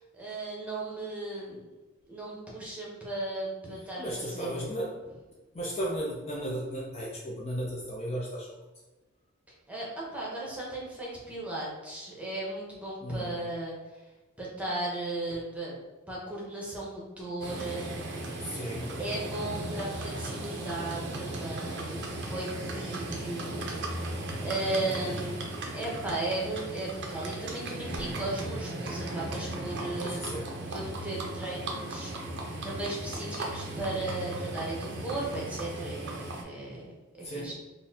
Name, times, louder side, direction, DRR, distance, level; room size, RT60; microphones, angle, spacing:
voice 1, 0.1-1.6 2.1-4.5 9.7-14.0 14.4-15.8 16.1-17.9 19.0-23.5 24.4-25.4 25.7-30.2 30.7-32.3 32.6-37.5, right 2 dB, 5° right, -5 dB, 0.9 m, -36 dB
voice 2, 4.0-4.9 5.5-8.6 13.0-13.4 18.4-19.1 30.0-30.4 37.2-37.5, equal, 30° left, -3 dB, 0.5 m, -35 dB
Livestock farm animals working animals, 17.4-36.4, right 2 dB, 55° right, 0.6 m, -36 dB
3.9 x 2.6 x 2.8 m, 1.2 s
head